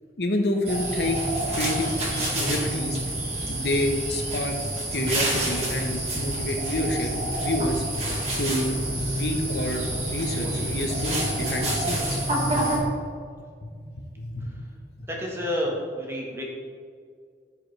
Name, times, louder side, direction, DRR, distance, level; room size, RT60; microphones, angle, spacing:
voice 1, 0.2-1.2 1.5-1.9 2.3-3.0 3.5-4.6 4.9-7.1 7.4-7.8 8.4-9.8 10.1-12.2 13.4-14.6 15.0-15.1, left 1 dB, 65° left, 2 dB, 1.0 m, -28 dB
sound 1, 0.6-12.8, right 1 dB, 35° right, 1.9 m, -28 dB
voice 2, 15.2-16.4, equal, 15° right, -2 dB, 1.4 m, -29 dB
14.5 x 5.0 x 3.3 m, 2.1 s
head